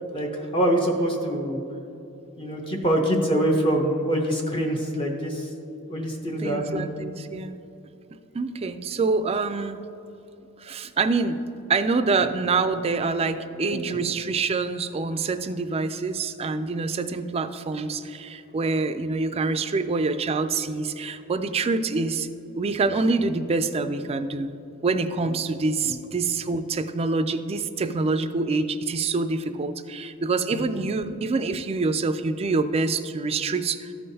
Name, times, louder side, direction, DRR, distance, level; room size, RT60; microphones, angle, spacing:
voice 1, 0.1-1.6 2.4-5.5 5.9-6.9 25.8-25.9 30.5-30.6, right 1 dB, 25° left, 0 dB, 0.7 m, -24 dB
voice 2, 6.4-7.6 8.3-9.8 10.6-11.4 11.7-22.3 22.6-24.5 24.8-33.9, right 3 dB, 25° right, 10 dB, 0.3 m, -26 dB
13.5 x 5.6 x 2.7 m, 2.8 s
head